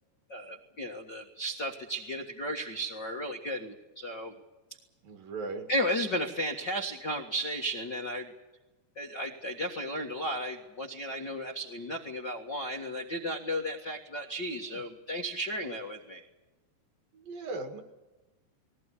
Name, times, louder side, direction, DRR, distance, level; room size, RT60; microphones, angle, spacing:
voice 1, 0.3-4.4 5.7-8.3 8.9-16.2, equal, 65° left, 1 dB, 1.0 m, -34 dB
voice 2, 5.0-5.7 14.6-14.8 17.1-17.8, right 3 dB, 60° right, 6 dB, 3.4 m, -38 dB
20.5 x 18.0 x 9.9 m, 1.1 s
omnidirectional pair, 4.9 m